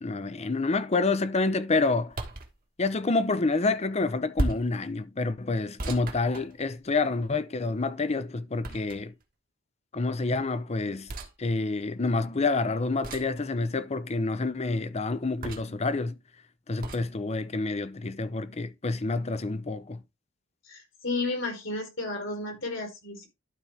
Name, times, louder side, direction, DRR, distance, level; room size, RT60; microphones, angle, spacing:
voice 1, 0.0-2.2 2.8-9.1 9.9-11.1 11.4-16.2 16.7-20.0, left 3 dB, 35° left, 0.6 m, -28 dB
sound 1, 2.1-2.5 4.4-4.8 5.8-7.0 8.6-9.2 11.1-11.3 13.0-13.4 15.4-15.8 16.8-17.1, right 1 dB, 45° right, 1.4 m, -34 dB
voice 2, 20.7-23.3, left 2 dB, 75° left, 3.6 m, -32 dB
12.0 x 4.4 x 3.4 m
head